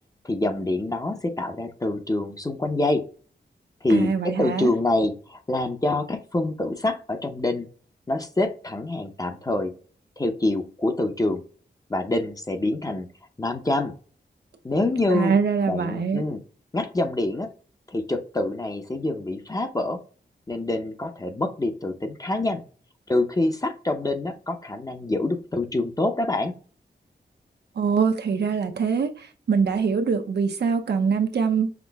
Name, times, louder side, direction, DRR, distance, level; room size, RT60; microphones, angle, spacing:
voice 1, 0.2-3.0 3.8-7.7 8.1-9.7 10.2-11.4 11.9-13.1 13.4-13.9 14.6-15.3 15.7-16.4 16.7-17.5 17.9-20.0 20.5-22.6 23.1-26.5, left 2 dB, 20° left, 0.7 m, -26 dB
voice 2, 3.9-4.7 15.1-16.2 27.8-31.7, right 6 dB, 70° right, 0.7 m, -23 dB
5.9 x 2.1 x 3.4 m
wide cardioid pair, 120°, 18 cm